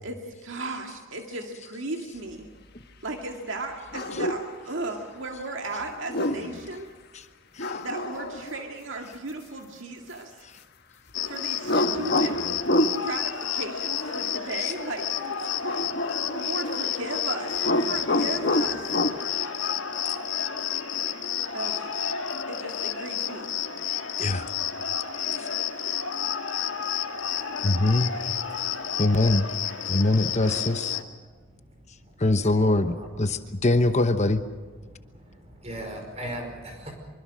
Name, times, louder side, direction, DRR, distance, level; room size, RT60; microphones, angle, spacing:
voice 1, 0.0-2.5 3.0-6.9 7.8-10.3 11.2-12.4 13.0-15.2 16.3-19.0 21.5-21.9 22.5-23.5, right 2 dB, 75° right, 3 dB, 2.0 m, -35 dB
sound 1, 3.9-4.5 5.9-6.6 7.6-8.7 11.6-13.0 15.6-17.2 17.5-19.2, left 1 dB, 55° left, 1.3 m, -27 dB
Cricket, 11.1-31.0, left 8 dB, 75° left, 1.7 m, -30 dB
voice 2, 27.6-28.1 29.0-29.5 29.9-31.0 32.2-34.4, left 2 dB, 35° left, 9 dB, 1.0 m, -23 dB
voice 3, 32.5-33.6 34.8-37.0, right 1 dB, 35° right, 3 dB, 5.2 m, -39 dB
25.5 x 24.5 x 6.3 m, 1.5 s
head